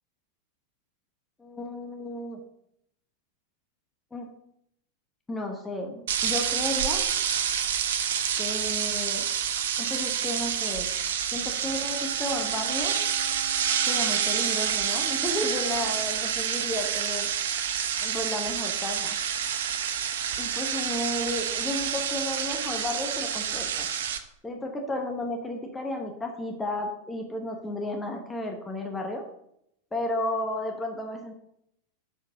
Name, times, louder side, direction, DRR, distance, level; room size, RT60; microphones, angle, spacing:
voice 1, 1.4-2.4 4.1-4.3 5.3-7.1 8.4-9.3 9.8-10.9 11.3-13.0 13.9-17.3 18.0-19.2 20.4-23.9 24.4-29.2 29.9-31.3, left 1 dB, 10° left, 2 dB, 1.0 m, -33 dB
sound 1, 6.1-24.2, right 8 dB, 60° right, 0.7 m, -28 dB
Bowed string instrument, 11.8-16.2, right 7 dB, 40° right, 1.1 m, -42 dB
6.1 x 5.0 x 6.3 m, 0.77 s
figure-of-eight pair, 90°, 0 cm